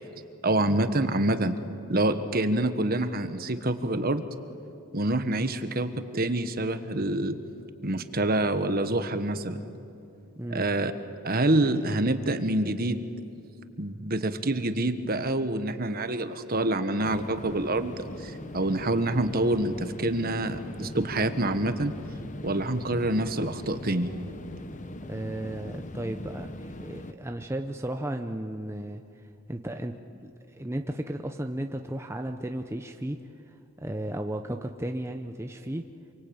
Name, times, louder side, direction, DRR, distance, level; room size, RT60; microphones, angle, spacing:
voice 1, 0.4-1.6 1.9-4.2 4.9-7.4 7.8-9.6 10.5-10.9 11.2-13.0 13.8-21.9 22.4-24.1, right 1 dB, 45° right, 10 dB, 1.4 m, -26 dB
sound 1, 17.0-27.1, left 1 dB, 35° left, 1.0 m, -40 dB
voice 2, 25.1-29.2 29.5-33.2 33.5-35.8, right 1 dB, 10° right, 5 dB, 0.7 m, -34 dB
27.0 x 24.0 x 8.9 m, 2.7 s
head